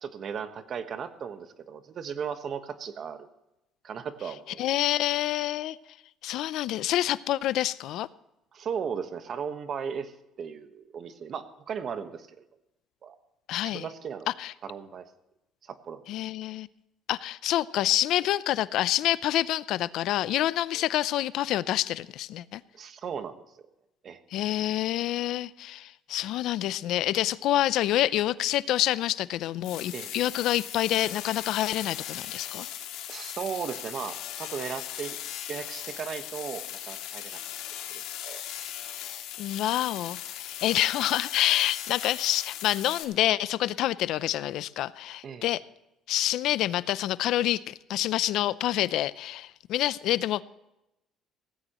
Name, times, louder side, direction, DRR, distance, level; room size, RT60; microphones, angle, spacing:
voice 1, 0.0-3.3 3.8-4.7 8.5-10.1 10.4-12.4 13.0-13.2 13.6-14.3 14.6-15.1 15.6-16.0 20.7-20.8 22.7-23.4 24.0-24.2 29.9-30.1 33.1-35.2 35.5-37.4 37.9-38.4 45.2-45.4, right 7 dB, 45° right, 10 dB, 1.2 m, -36 dB
voice 2, 4.6-5.8 6.2-8.1 13.5-13.9 14.3-14.5 16.1-16.7 17.1-22.6 24.3-32.7 39.4-45.6 46.1-50.4, left 13 dB, 70° left, 18 dB, 0.5 m, -27 dB
sound 1, 29.6-43.0, left 11 dB, 90° left, 2.3 m, -38 dB
17.5 x 15.5 x 3.0 m, 0.91 s
cardioid pair, 130°, 0 cm